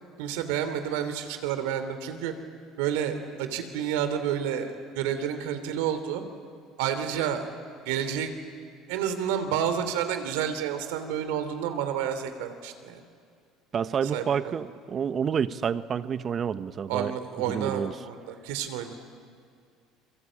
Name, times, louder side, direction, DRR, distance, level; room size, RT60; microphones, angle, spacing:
voice 1, 0.2-2.3 2.8-6.2 6.8-7.5 7.8-8.3 8.9-13.0 14.1-14.5 16.9-18.9, right 9 dB, 85° right, 9 dB, 2.8 m, -30 dB
voice 2, 13.7-17.1 17.5-17.9, right 7 dB, 40° right, 13 dB, 1.1 m, -29 dB
29.5 x 23.0 x 8.7 m, 2.2 s
supercardioid pair, 95°, 0 cm